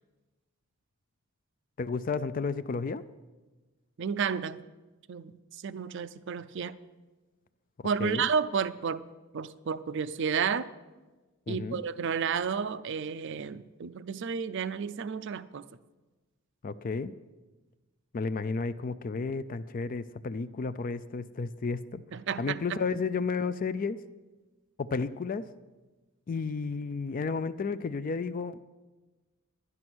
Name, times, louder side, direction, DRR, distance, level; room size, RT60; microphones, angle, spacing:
voice 1, 1.8-3.0 7.8-8.3 11.5-11.8 16.6-17.1 18.1-22.0 22.4-24.0 24.8-25.4 26.3-28.6, left 4 dB, 40° left, 13 dB, 0.4 m, -32 dB
voice 2, 4.0-4.6 5.1-5.3 5.6-6.8 7.8-9.1 9.3-10.7 11.5-15.6 22.1-22.6, right 6 dB, 55° right, 15 dB, 0.5 m, -31 dB
11.0 x 11.0 x 6.1 m, 1.2 s
head